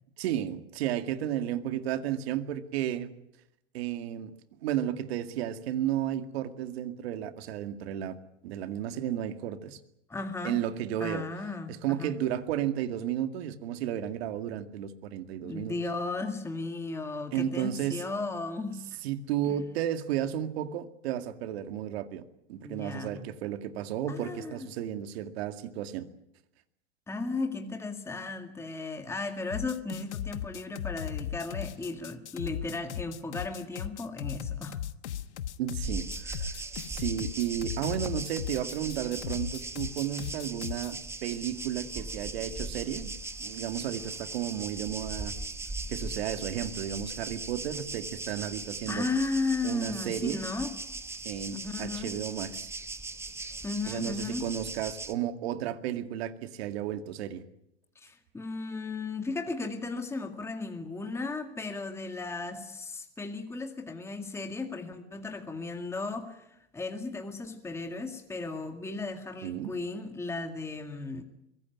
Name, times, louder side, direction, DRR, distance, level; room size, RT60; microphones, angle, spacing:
voice 1, 0.2-3.1 3.7-4.3 4.6-8.2 8.4-9.8 10.4-11.2 11.7-15.8 17.3-18.0 19.0-22.2 22.5-26.1 35.6-36.5 36.9-43.1 43.4-45.3 45.9-49.1 49.6-50.4 51.2-52.7 53.9-57.4 69.4-69.7, right 11 dB, 65° right, 9 dB, 2.1 m, -33 dB
voice 2, 10.1-10.6 11.0-12.2 15.4-19.0 19.5-19.6 22.6-23.3 24.1-24.7 27.1-34.8 48.9-50.8 51.5-52.2 53.6-54.5 58.0-71.2, left 3 dB, 10° left, 5 dB, 2.0 m, -35 dB
sound 1, 29.5-40.9, left 11 dB, 90° left, 1.2 m, -37 dB
sound 2, 35.8-55.1, right 3 dB, 10° right, 1.1 m, -39 dB
23.0 x 17.0 x 9.5 m, 0.81 s
supercardioid pair, 130°, 33 cm